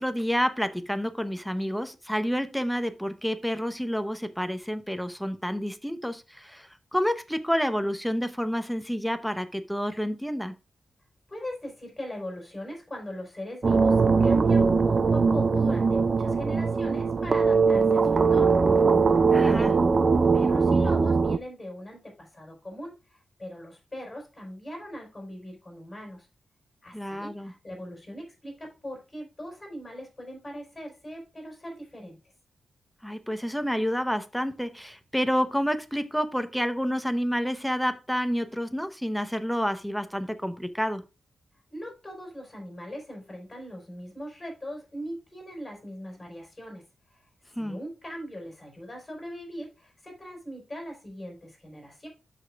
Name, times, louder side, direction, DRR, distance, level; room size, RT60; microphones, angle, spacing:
voice 1, 0.0-10.5 19.3-19.7 26.9-27.5 33.0-41.0 47.6-47.8, equal, ahead, 9 dB, 0.8 m, -29 dB
voice 2, 11.3-13.9 14.2-18.6 19.3-19.9 20.3-26.3 26.8-32.2 41.7-46.8 47.6-52.1, equal, 15° left, 1 dB, 4.4 m, -40 dB
sound 1, 13.6-21.4, right 4 dB, 35° right, 0.4 m, -21 dB
12.5 x 5.1 x 2.3 m, 0.29 s
wide cardioid pair, 135°, 0 cm